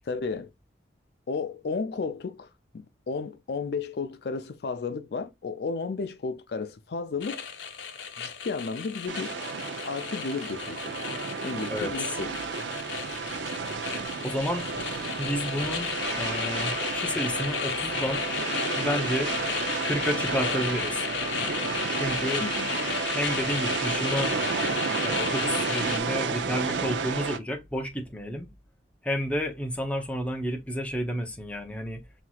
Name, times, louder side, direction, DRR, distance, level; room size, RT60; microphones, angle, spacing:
voice 1, 0.1-0.5 1.3-7.5 8.2-9.4 9.8-11.0 11.4-12.3 22.4-22.7, left 4 dB, 60° left, 0.4 m, -33 dB
sound 1, 7.2-26.0, left 6 dB, 90° left, 0.8 m, -34 dB
sound 2, 9.1-27.4, right 4 dB, 80° right, 0.6 m, -31 dB
voice 2, 11.7-12.2 14.2-15.9 16.2-18.3 18.7-19.3 19.8-21.1 22.0-22.5 23.1-24.4 25.0-28.5 29.0-32.0, equal, 5° left, 0.7 m, -31 dB
5.9 x 2.9 x 2.3 m
head